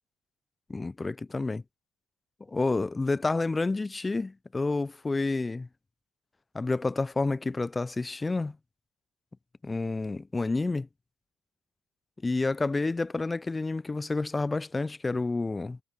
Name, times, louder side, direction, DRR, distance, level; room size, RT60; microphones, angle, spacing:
voice 1, 0.7-1.6 2.5-5.7 6.5-8.6 9.6-10.9 12.2-15.8, left 3 dB, 20° left, 0.8 m, -29 dB
figure-of-eight pair, 55°, 0 cm